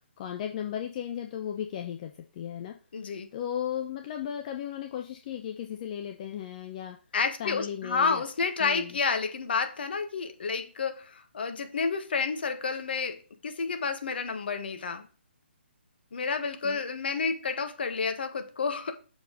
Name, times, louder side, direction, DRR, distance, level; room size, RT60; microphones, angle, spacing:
voice 1, 0.2-2.7 3.3-7.0 7.4-8.2 8.6-9.0 16.6-16.8, left 9 dB, 35° left, 0.8 m, -35 dB
voice 2, 2.9-3.3 7.1-15.1 16.1-18.9, left 5 dB, 60° left, 1.4 m, -30 dB
6.9 x 4.7 x 5.2 m
figure-of-eight pair, 140°, 6 cm